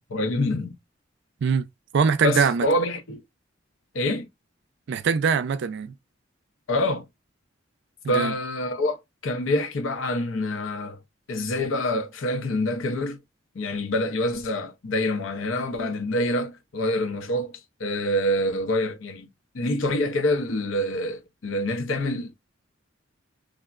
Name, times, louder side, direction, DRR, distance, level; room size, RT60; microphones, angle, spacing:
voice 1, 0.1-0.8 2.2-3.2 3.9-4.3 6.7-7.0 8.1-11.0 11.3-13.2 13.5-19.3 19.5-22.3, left 1 dB, 80° left, 0.6 m, -26 dB
voice 2, 1.9-2.7 4.9-5.9 8.0-8.3, right 6 dB, 60° right, 0.4 m, -22 dB
3.6 x 2.1 x 2.3 m
head